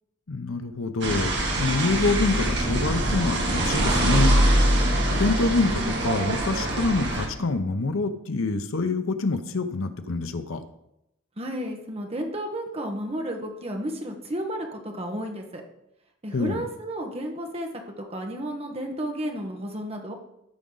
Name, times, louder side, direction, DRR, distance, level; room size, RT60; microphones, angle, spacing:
voice 1, 0.3-4.4 5.2-10.6 16.3-16.6, left 3 dB, 75° left, 8 dB, 0.8 m, -26 dB
sound 1, 1.0-7.3, right 1 dB, 55° right, 1.8 m, -23 dB
voice 2, 11.4-15.6 16.2-20.1, right 1 dB, 30° right, 3 dB, 1.2 m, -32 dB
13.5 x 5.0 x 3.9 m, 0.84 s
head